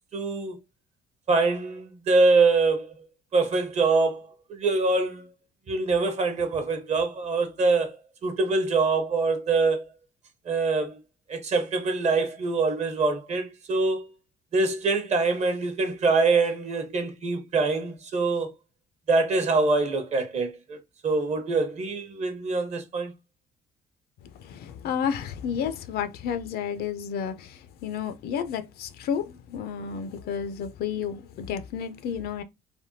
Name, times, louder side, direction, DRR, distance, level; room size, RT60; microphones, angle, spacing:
voice 1, 0.1-0.6 1.3-2.9 3.3-5.3 5.7-8.0 8.2-9.8 10.5-11.0 11.3-14.1 14.5-18.5 19.1-20.8 21.0-23.1, right 3 dB, 40° right, 0.8 m, -24 dB
voice 2, 24.4-32.4, left 8 dB, 65° left, 0.5 m, -31 dB
3.4 x 2.2 x 2.6 m
cardioid pair, 110°, 17 cm